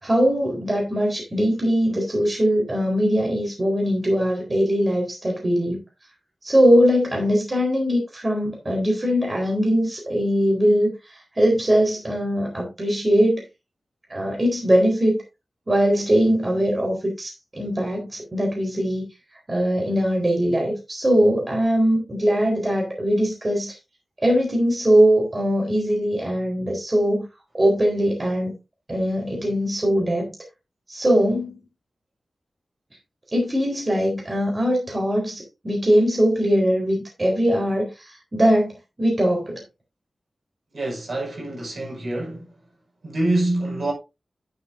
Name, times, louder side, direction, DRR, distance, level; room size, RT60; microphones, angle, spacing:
voice 1, 0.0-5.8 6.4-13.4 14.1-15.2 15.7-19.0 19.5-23.8 24.2-27.2 27.5-28.5 28.9-30.3 30.9-31.6 33.3-39.6, equal, 30° right, 3.9 m, -21 dB
voice 2, 40.7-42.5 43.0-43.9, right 1 dB, 65° right, 5.2 m, -25 dB
9.9 x 9.0 x 2.6 m
wide cardioid pair, 105°, 0 cm